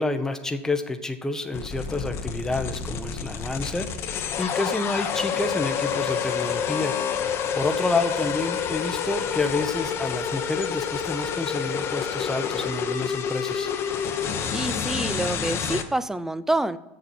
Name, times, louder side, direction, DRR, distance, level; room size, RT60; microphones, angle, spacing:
voice 1, 0.0-6.9 7.5-13.7, left 2 dB, 10° left, 6 dB, 0.9 m, -29 dB
sound 1, 1.5-15.8, left 7 dB, 45° left, 1.0 m, -28 dB
voice 2, 14.5-16.8, right 2 dB, 5° right, 15 dB, 0.5 m, -27 dB
7.8 x 6.9 x 7.8 m, 0.98 s
supercardioid pair, 105°, 6 cm